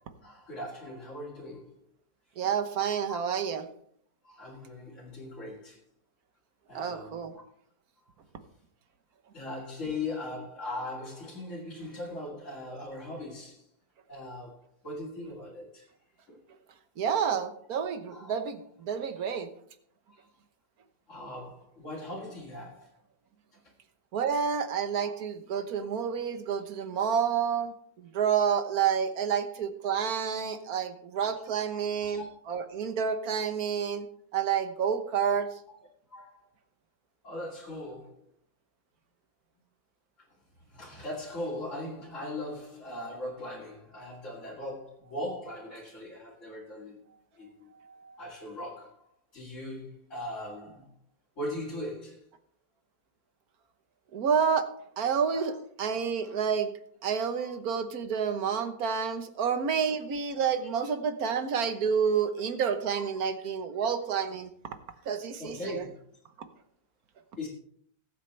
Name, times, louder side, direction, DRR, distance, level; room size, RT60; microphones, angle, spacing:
voice 1, 0.2-1.7 3.1-3.2 4.2-5.8 6.7-7.4 9.3-13.7 14.1-15.9 16.3-16.4 18.1-18.3 20.1-20.2 21.1-22.9 23.5-23.6 25.0-25.1 31.2-31.3 31.6-31.7 32.0-32.3 35.3-35.4 35.7-35.8 36.1-36.5 37.2-38.2 40.7-47.0 47.4-47.7 48.2-50.9 51.4-52.3 55.3-55.5 56.2-56.4 57.4-57.6 61.2-61.4 63.0-63.1 65.4-65.9 67.4-67.5, left 1 dB, 45° left, -7 dB, 2.7 m, -40 dB
voice 2, 2.4-3.6 6.7-7.3 17.0-19.5 24.1-34.1 34.3-35.5 47.8-48.2 54.1-54.7 55.0-56.7 57.0-64.5 65.1-65.8, right 7 dB, 60° right, 9 dB, 1.5 m, -29 dB
20.5 x 8.5 x 3.3 m, 0.65 s
omnidirectional pair, 1.8 m